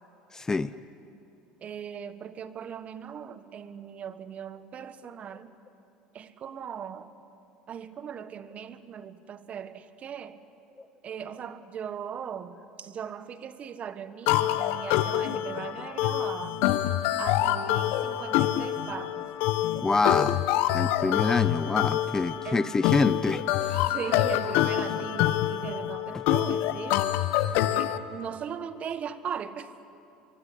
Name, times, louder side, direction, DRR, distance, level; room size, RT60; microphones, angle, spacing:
voice 1, 0.3-0.7 19.7-20.4 20.7-23.9 26.1-26.2, left 3 dB, 15° left, 15 dB, 0.6 m, -27 dB
voice 2, 1.6-5.5 6.1-7.1 7.7-10.4 11.0-16.6 17.2-19.2 22.4-22.8 23.8-27.0 27.7-29.7, right 8 dB, 40° right, 13 dB, 1.4 m, -39 dB
sound 1, 14.3-28.0, left 13 dB, 70° left, 1.1 m, -26 dB
24.5 x 23.0 x 10.0 m, 2.8 s
supercardioid pair, 100°, 3 cm